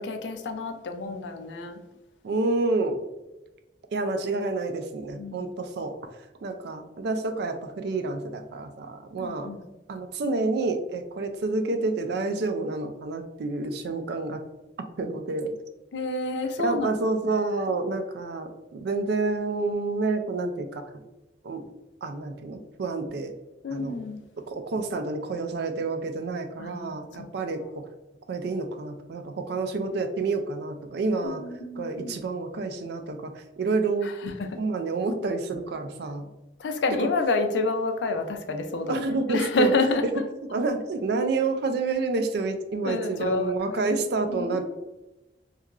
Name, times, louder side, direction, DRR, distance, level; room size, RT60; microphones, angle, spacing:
voice 1, 0.0-1.8 5.1-5.5 9.2-9.7 15.9-16.9 23.6-24.2 26.6-27.3 31.2-32.2 34.2-34.6 36.6-40.2 42.8-43.9 44.3-44.6, left 3 dB, 80° left, 6 dB, 0.4 m, -29 dB
voice 2, 2.2-3.0 3.9-6.2 6.4-9.5 9.9-14.4 15.0-15.5 16.6-21.0 21.4-21.6 22.0-23.3 23.7-24.0 24.5-27.9 28.3-31.5 31.8-34.1 34.6-36.3 37.0-37.1 38.9-40.1 40.5-44.6, right 3 dB, 65° right, 7 dB, 0.4 m, -29 dB
2.9 x 2.4 x 2.3 m, 1.0 s
head